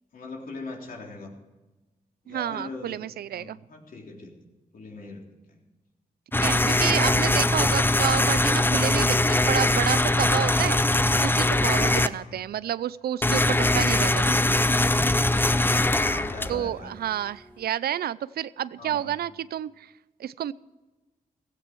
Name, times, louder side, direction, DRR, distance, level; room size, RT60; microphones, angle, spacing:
voice 1, 0.1-1.3 2.2-3.0 3.3-4.3 4.7-5.6 11.6-12.4 15.7-17.0 18.8-19.2, left 3 dB, 65° left, 0 dB, 3.8 m, -40 dB
voice 2, 2.3-3.6 6.4-14.6 16.5-19.9 20.2-20.5, right 11 dB, 85° right, 18 dB, 0.5 m, -30 dB
sound 1, 6.3-12.1 13.2-16.8, left 2 dB, 15° left, 0.6 m, -22 dB
16.0 x 15.0 x 4.6 m, 1.2 s
cardioid pair, 75°, 16 cm